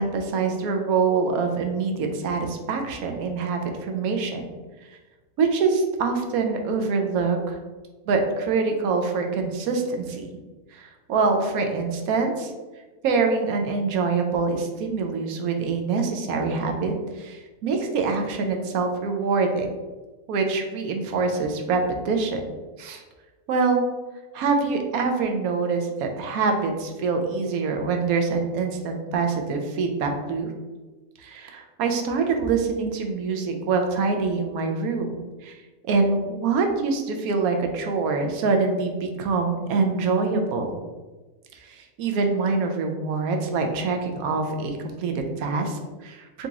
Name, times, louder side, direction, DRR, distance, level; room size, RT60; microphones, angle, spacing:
voice 1, 0.0-4.5 5.4-7.6 8.1-10.3 10.7-12.5 13.0-19.7 20.3-22.4 22.8-23.0 23.5-23.8 24.3-30.5 31.2-35.6 35.9-40.8 41.7-46.5, right 4 dB, 70° right, 4 dB, 1.0 m, -25 dB
3.8 x 2.9 x 3.5 m, 1.2 s
omnidirectional pair, 1.7 m